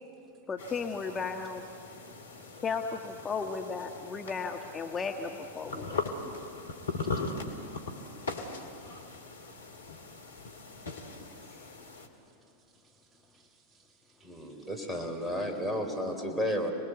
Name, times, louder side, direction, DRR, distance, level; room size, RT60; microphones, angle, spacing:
voice 1, 0.5-1.6 2.6-6.3, left 5 dB, 25° left, 3 dB, 1.4 m, -35 dB
sound 1, 0.6-12.1, left 3 dB, 80° left, 2.3 m, -40 dB
voice 2, 12.7-14.7, right 5 dB, 30° right, 3 dB, 1.8 m, -66 dB
voice 3, 14.2-16.7, equal, 5° right, 3 dB, 4.4 m, -32 dB
28.0 x 20.5 x 8.2 m, 2.7 s
figure-of-eight pair, 90°, 0 cm